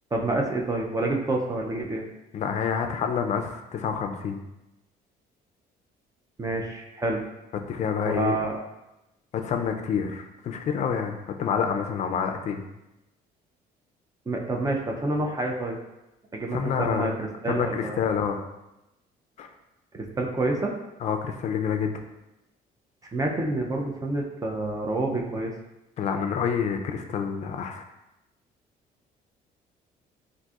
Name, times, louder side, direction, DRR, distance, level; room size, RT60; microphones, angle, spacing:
voice 1, 0.1-2.1 6.4-7.2 8.0-8.6 14.3-15.8 16.3-18.0 19.9-20.7 23.1-25.5, right 2 dB, 20° right, 1 dB, 0.4 m, -28 dB
voice 2, 2.3-4.4 7.7-8.4 9.3-12.6 16.5-17.1 17.5-18.4 19.4-19.5 21.0-22.0 26.0-27.8, left 7 dB, 45° left, 5 dB, 0.4 m, -28 dB
3.9 x 2.5 x 2.3 m, 0.94 s
cardioid pair, 110°, 17 cm